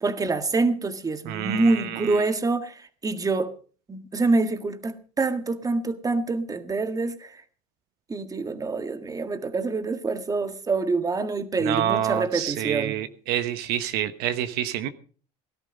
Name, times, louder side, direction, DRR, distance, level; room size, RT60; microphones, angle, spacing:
voice 1, 0.0-3.5 3.9-7.4 8.1-13.0, right 3 dB, 20° right, 1.7 m, -26 dB
voice 2, 1.2-2.2 11.6-14.9, right 11 dB, 70° right, 1.2 m, -27 dB
18.0 x 12.0 x 5.3 m
supercardioid pair, 105°, 17 cm